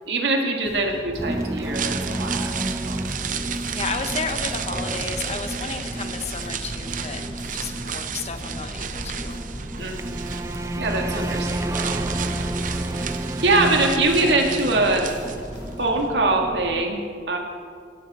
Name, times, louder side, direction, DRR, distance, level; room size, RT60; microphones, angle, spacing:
voice 1, 0.1-2.5 2.8-3.0 9.8-10.2 10.7-12.0 13.4-15.1 15.8-17.0 17.3-17.4, right 2 dB, 75° right, 2 dB, 2.2 m, -23 dB
sound 1, 0.7-16.0, left 1 dB, 90° left, 3.6 m, -41 dB
sound 2, 1.2-16.8, right 1 dB, 15° right, 0.7 m, -31 dB
sound 3, 1.6-15.7 16.0-16.1, right 8 dB, 50° right, 0.7 m, -34 dB
voice 2, 3.7-7.2 7.5-9.4, left 4 dB, 40° left, 7 dB, 1.1 m, -32 dB
17.5 x 14.0 x 4.4 m, 2.2 s
head